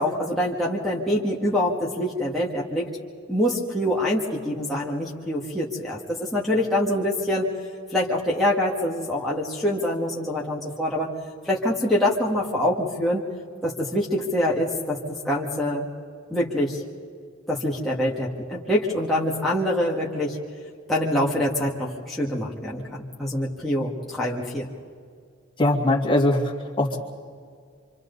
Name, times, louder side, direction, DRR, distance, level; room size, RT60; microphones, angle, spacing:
voice 1, 0.0-2.9 3.3-7.5 7.9-11.1 11.4-13.2 13.6-15.9 16.3-16.8 17.5-20.4 20.9-24.7, left 1 dB, ahead, -6 dB, 1.9 m, -25 dB
voice 2, 25.6-27.0, left 1 dB, 25° left, -2 dB, 2.4 m, -21 dB
27.5 x 26.0 x 4.1 m, 2.2 s
head